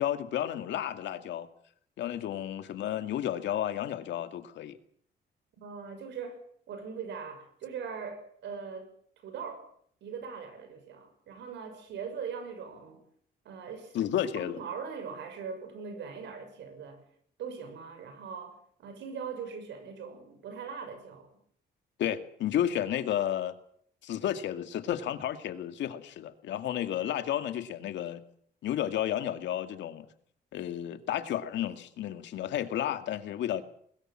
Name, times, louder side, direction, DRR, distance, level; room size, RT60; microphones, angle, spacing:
voice 1, 0.0-1.5 2.0-4.8 13.9-14.6 22.0-23.6 24.0-28.2 28.6-30.1 30.5-33.6, left 11 dB, 80° left, 9 dB, 2.2 m, -32 dB
voice 2, 5.6-6.4 6.7-8.9 9.2-9.7 10.0-13.0 13.4-14.0 14.3-17.0 17.4-21.3, right 6 dB, 80° right, 9 dB, 6.6 m, -41 dB
21.5 x 20.5 x 7.7 m, 0.62 s
cardioid pair, 155°, 18 cm